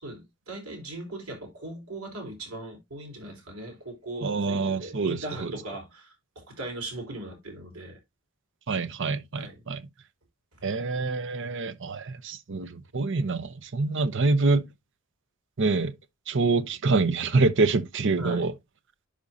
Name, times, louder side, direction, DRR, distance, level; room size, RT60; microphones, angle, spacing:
voice 1, 0.0-8.0 9.3-9.6 18.2-18.5, right 2 dB, 90° right, 4.6 m, -39 dB
voice 2, 4.2-5.5 8.7-9.8 10.6-14.6 15.6-15.9 16.3-18.5, right 3 dB, 60° right, 0.8 m, -26 dB
10.5 x 5.1 x 2.7 m
head